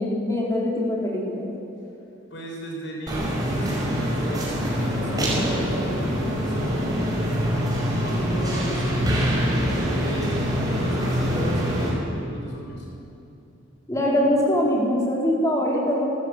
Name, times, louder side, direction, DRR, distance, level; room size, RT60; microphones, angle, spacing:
voice 1, 0.0-1.5 13.9-16.0, left 1 dB, 15° left, -4 dB, 4.6 m, -23 dB
voice 2, 2.3-7.6 7.9-9.3 9.9-12.9, right 1 dB, 60° left, -1 dB, 6.3 m, -37 dB
sound 1, 3.1-11.9, equal, 20° right, 5.5 m, -24 dB
27.0 x 15.0 x 8.2 m, 2.7 s
head